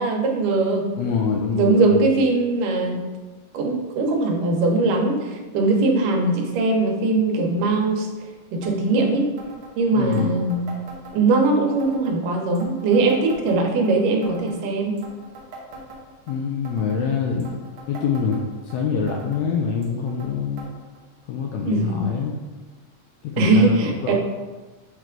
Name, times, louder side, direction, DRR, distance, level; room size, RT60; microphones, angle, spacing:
voice 1, 0.0-0.9 1.6-3.1 3.5-8.1 8.5-9.2 9.8-10.7 11.1-15.0 21.6-22.0 23.4-24.1, right 3 dB, 85° right, 2 dB, 2.4 m, -20 dB
voice 2, 1.0-1.9 9.9-10.3 16.3-17.5 17.9-20.7 21.3-22.3 23.2-24.1, left 6 dB, 85° left, 0 dB, 1.5 m, -25 dB
sound 1, 8.6-8.7 9.0-9.1 9.4-9.7 10.1-11.5 11.8-12.2 12.6-13.9 14.2-14.6 15.0-16.3 16.7-17.0 17.4-18.8 19.1-19.4 19.8-20.3 20.6-20.7 21.0-21.1 21.8-21.9 22.7-22.8, right 2 dB, 60° right, 1.4 m, -42 dB
7.5 x 3.3 x 3.8 m, 1.3 s
omnidirectional pair, 3.7 m